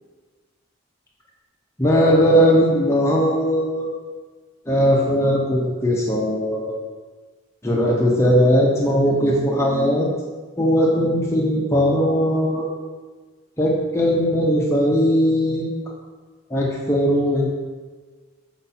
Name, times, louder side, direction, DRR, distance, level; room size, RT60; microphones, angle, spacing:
voice 1, 1.8-3.9 4.7-6.8 7.6-10.1 10.6-12.7 13.6-15.6 16.5-17.5, equal, 15° left, -3 dB, 0.6 m, -19 dB
6.7 x 4.5 x 4.2 m, 1.4 s
head